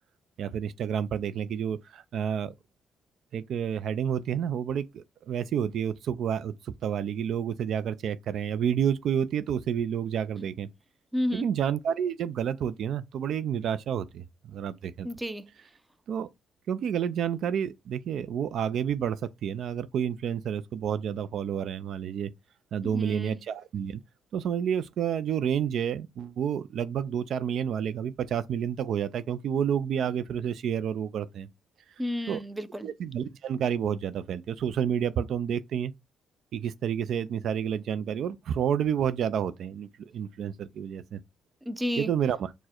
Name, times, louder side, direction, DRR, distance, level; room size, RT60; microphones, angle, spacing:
voice 1, 0.4-2.5 3.3-10.7 11.3-15.1 16.1-16.3 16.7-22.3 22.7-24.0 24.3-31.5 32.3-32.4 32.8-35.9 36.5-41.2 42.0-42.5, right 8 dB, 70° right, 0.3 m, -29 dB
voice 2, 11.1-11.5 15.0-15.4 22.8-23.4 32.0-32.9 41.7-42.1, left 1 dB, 10° right, 0.5 m, -31 dB
4.4 x 2.1 x 4.3 m
cardioid pair, 90°, 0 cm